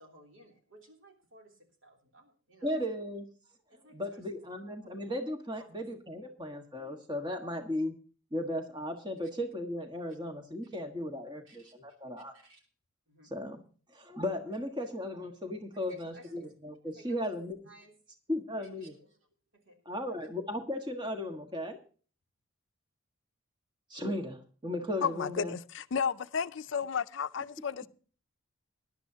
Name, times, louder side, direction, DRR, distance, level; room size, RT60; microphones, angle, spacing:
voice 1, 0.0-2.8 3.7-4.2 4.8-4.9 5.6-5.7 11.5-11.7 12.3-12.6 13.1-13.3 15.7-16.5 16.9-17.4 17.6-18.0 18.6-19.2 19.5-20.2, right 1 dB, 65° right, 3.1 m, -57 dB
voice 2, 2.6-3.3 3.9-7.9 8.3-12.3 13.2-13.6 13.9-17.6 18.3-18.9 19.8-21.8 23.9-25.5, left 1 dB, 20° right, 1.5 m, -36 dB
voice 3, 25.0-27.9, left 6 dB, 60° left, 0.5 m, -32 dB
19.5 x 11.0 x 2.8 m
head